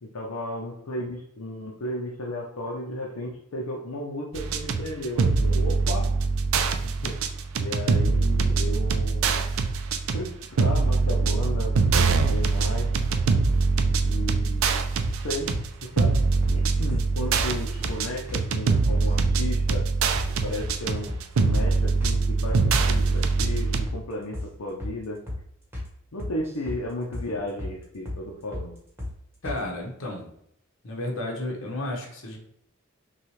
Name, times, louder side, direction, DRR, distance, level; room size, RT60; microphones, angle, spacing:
voice 1, 0.0-6.1 7.0-7.2 7.6-9.4 10.1-10.3 10.6-12.9 14.0-14.8 15.2-15.5 15.8-16.2 16.5-19.8 20.4-25.2 26.1-28.7, left 1 dB, 85° left, -1 dB, 0.6 m, -34 dB
sound 1, 4.3-23.9, right 4 dB, 65° right, 0.4 m, -23 dB
sound 2, 15.0-15.7 16.0-16.1 16.4-16.6 16.9-17.1 17.4-17.5 17.8-18.0 18.3-18.4 18.8-19.4 19.7-19.8 20.1-20.3 20.6-20.8 21.1-21.2 21.5-21.7 22.0-22.2 22.5-23.1 23.4-23.6 23.9-24.0 24.3-24.5 24.8-25.0 25.3-25.4 25.7-25.9 26.2-26.8 27.1-27.3 27.6-27.8 28.1-28.2 28.5-28.7 29.0-29.1 29.4-29.6, left 1 dB, 10° right, 1.1 m, -34 dB
voice 2, 29.4-30.3 30.8-32.4, left 1 dB, 65° left, 0 dB, 1.1 m, -32 dB
5.8 x 2.3 x 3.1 m, 0.72 s
head